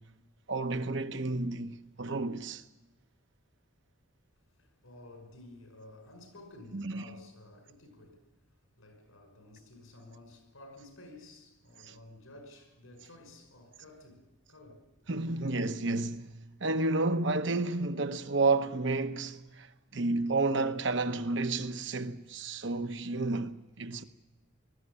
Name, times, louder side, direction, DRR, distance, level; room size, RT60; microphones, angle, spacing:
voice 1, 0.5-2.6 6.7-7.0 11.9-12.0 15.1-16.3 16.6-24.0, right 3 dB, 60° right, 1.0 m, -31 dB
voice 2, 4.5-8.4 8.8-15.3, left 1 dB, 85° left, 5.8 m, -53 dB
19.5 x 14.0 x 9.9 m
head